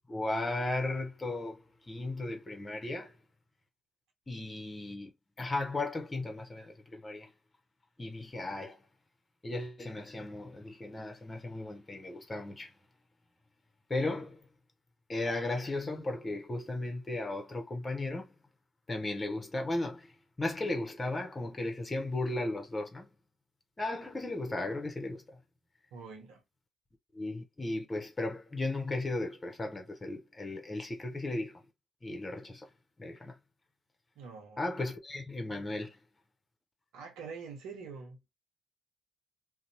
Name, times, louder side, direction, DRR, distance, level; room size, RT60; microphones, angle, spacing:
voice 1, 0.1-3.2 4.3-5.1 5.4-7.3 8.0-8.8 9.4-12.7 13.9-14.5 15.1-18.3 18.9-23.1 23.8-25.4 27.1-31.6 32.0-32.7 33.0-33.4 34.6-36.0, left 2 dB, 25° left, 0.7 m, -36 dB
voice 2, 25.9-26.4 34.1-34.6 36.9-38.2, right 5 dB, 80° right, 0.8 m, -45 dB
2.6 x 2.0 x 2.7 m
hypercardioid pair, 50°, 0 cm